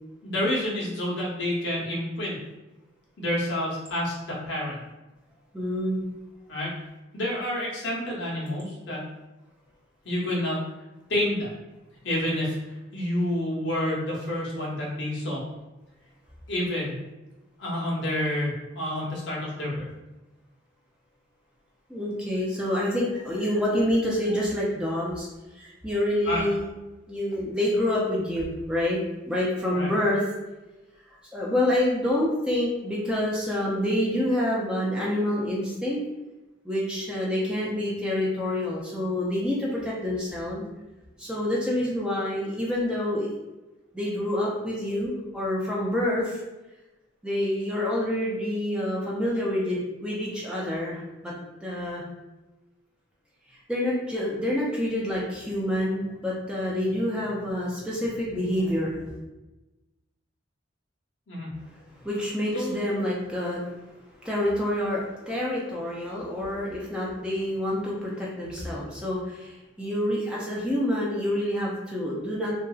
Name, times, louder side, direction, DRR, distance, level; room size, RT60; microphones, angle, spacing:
voice 1, 0.2-2.4 3.2-4.8 6.5-6.7 7.1-9.0 10.0-10.6 11.1-11.5 12.0-12.6 12.9-15.4 16.5-16.9 17.6-19.9 26.3-26.4 29.7-29.9 61.3-61.5 62.5-62.9, left 1 dB, 60° left, -5 dB, 0.9 m, -28 dB
voice 2, 5.5-6.0 21.9-25.3 25.5-26.7 27.1-29.0 29.3-30.2 31.1-36.0 36.6-40.6 41.2-43.3 43.9-46.4 47.2-51.3 51.6-52.0 53.5-59.2 61.7-63.7 64.2-72.5, left 1 dB, 5° right, -5 dB, 0.4 m, -27 dB
2.8 x 2.5 x 2.4 m, 1.1 s
head